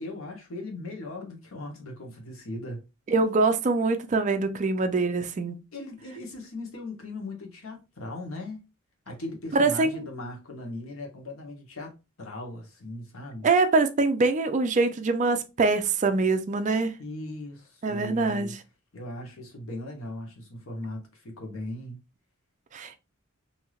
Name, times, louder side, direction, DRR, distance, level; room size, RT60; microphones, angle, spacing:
voice 1, 0.0-2.9 5.7-8.6 9.1-13.5 17.0-18.6 18.9-22.0, left 1 dB, 75° left, 1.0 m, -38 dB
voice 2, 3.1-5.6 9.5-10.1 13.4-17.0 17.8-18.6 22.7-23.0, right 3 dB, 35° right, 0.4 m, -24 dB
3.2 x 2.7 x 2.3 m
head